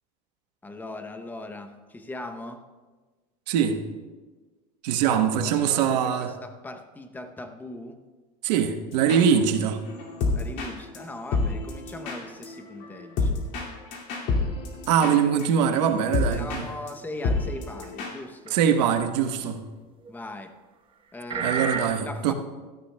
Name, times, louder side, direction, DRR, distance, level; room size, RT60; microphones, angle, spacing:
voice 1, 0.6-2.7 5.1-8.0 10.3-13.3 16.3-18.6 20.1-20.5 21.1-21.5 22.0-22.3, left 2 dB, 10° left, 8 dB, 0.7 m, -39 dB
voice 2, 3.5-3.8 4.8-6.3 8.4-9.8 14.9-16.6 18.5-19.6 21.4-22.3, right 8 dB, 85° right, 7 dB, 1.1 m, -22 dB
sound 1, 8.9-9.5 9.8-16.6 16.9-17.0 17.2-18.1, left 3 dB, 60° left, 2.3 m, -29 dB
sound 2, 16.0-16.3 17.8-17.9 18.5-18.6 20.1-20.2 21.3-21.8, right 4 dB, 25° right, 1.0 m, -28 dB
17.0 x 13.5 x 2.2 m, 1.3 s
supercardioid pair, 140°, 21 cm